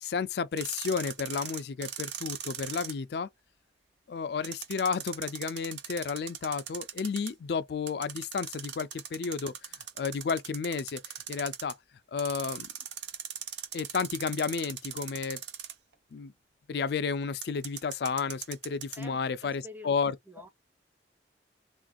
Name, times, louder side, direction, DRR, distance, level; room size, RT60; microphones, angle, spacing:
voice 1, 0.0-3.3 4.1-11.0 11.3-11.8 12.1-12.7 13.7-15.4 16.1-16.3 16.7-20.2, left 5 dB, 60° left, 0.4 m, -32 dB
sound 1, 0.6-2.9 4.4-7.3 7.9-11.7 12.2-15.9 17.4-19.0, right 9 dB, 75° right, 0.8 m, -40 dB
voice 2, 19.0-19.9 20.3-20.5, left 1 dB, 10° right, 0.5 m, -48 dB
3.3 x 2.5 x 2.3 m
head